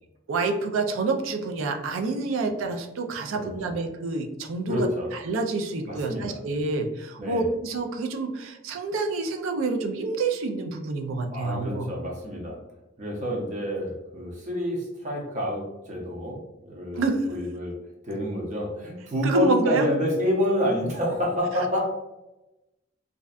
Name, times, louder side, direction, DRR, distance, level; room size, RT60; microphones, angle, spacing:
voice 1, 0.3-4.9 5.3-11.9 17.0-17.2 19.2-19.8, right 3 dB, 85° right, 4 dB, 0.4 m, -27 dB
voice 2, 3.3-3.8 4.7-5.1 5.9-6.4 7.2-7.5 11.3-12.6 13.0-17.7 18.0-21.8, equal, 40° right, -1 dB, 0.6 m, -28 dB
2.5 x 2.2 x 2.3 m, 0.97 s
head